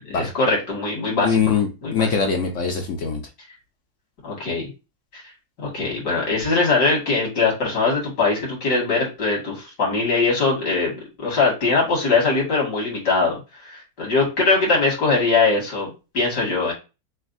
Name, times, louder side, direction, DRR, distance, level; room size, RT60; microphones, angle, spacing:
voice 1, 0.1-2.1 4.2-4.7 5.1-5.2 5.6-10.9 11.2-16.7, left 3 dB, 80° left, 2.6 m, -21 dB
voice 2, 1.2-3.2, left 6 dB, 60° left, 0.9 m, -22 dB
6.4 x 2.2 x 2.6 m
omnidirectional pair, 1.7 m